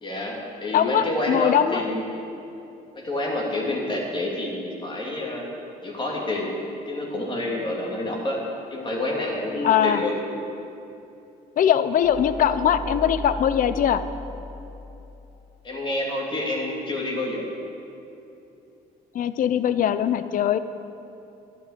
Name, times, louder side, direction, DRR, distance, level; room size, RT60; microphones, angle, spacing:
voice 1, 0.0-2.0 2.9-5.4 5.8-6.5 6.9-8.4 8.7-10.2 15.6-17.5, left 1 dB, 30° left, -2 dB, 2.9 m, -28 dB
voice 2, 0.7-1.8 9.6-10.0 11.6-14.0 19.1-20.6, left 9 dB, 55° left, 13 dB, 0.7 m, -21 dB
sound 1, 12.0-15.8, left 1 dB, 45° right, 2.3 m, -37 dB
12.0 x 10.5 x 8.3 m, 2.9 s
cardioid pair, 110°, 17 cm